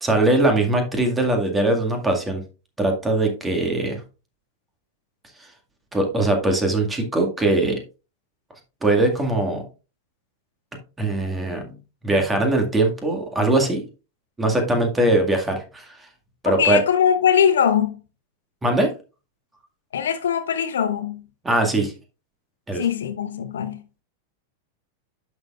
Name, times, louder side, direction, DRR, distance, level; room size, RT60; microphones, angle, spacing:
voice 1, 0.0-2.4 2.8-4.0 5.4-5.5 5.9-7.8 8.8-9.6 11.0-11.7 12.0-13.8 14.4-16.1 16.4-16.8 18.6-18.9 21.4-21.9 22.7-22.9, right 2 dB, 10° right, 2.0 m, -21 dB
voice 2, 16.4-18.0 19.9-21.2 22.7-23.8, left 8 dB, 65° left, 0.9 m, -21 dB
11.0 x 6.5 x 2.4 m
figure-of-eight pair, 90°, 0 cm